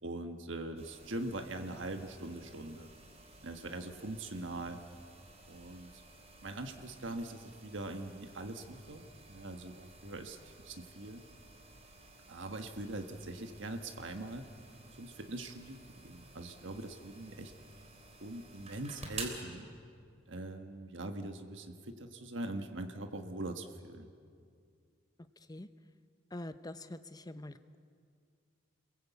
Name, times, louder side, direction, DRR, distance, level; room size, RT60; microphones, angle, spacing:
voice 1, 0.0-2.9 3.4-4.8 5.5-6.0 6.4-9.0 9.3-11.2 12.3-14.4 15.0-17.5 18.2-19.7 20.3-24.1, right 2 dB, 70° right, 5 dB, 1.6 m, -42 dB
sound 1, 0.8-19.4, right 3 dB, 35° right, 3.7 m, -53 dB
voice 2, 26.3-27.8, left 1 dB, 20° left, 11 dB, 0.8 m, -45 dB
30.0 x 22.0 x 8.3 m, 2.2 s
head